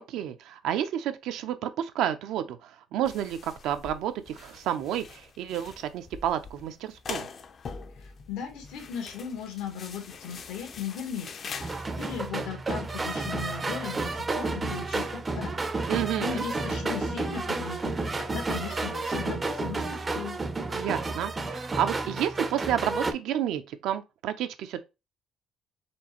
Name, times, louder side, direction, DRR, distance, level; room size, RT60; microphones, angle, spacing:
voice 1, 0.0-7.3 15.9-16.4 20.7-24.8, right 10 dB, 75° right, 0.6 m, -30 dB
sound 1, 3.0-12.3, left 5 dB, 40° left, 0.5 m, -43 dB
voice 2, 8.0-20.4, left 7 dB, 90° left, 1.4 m, -38 dB
sound 2, 11.6-23.1, right 3 dB, 20° right, 0.5 m, -31 dB
4.4 x 3.2 x 2.9 m
cardioid pair, 135°, 0 cm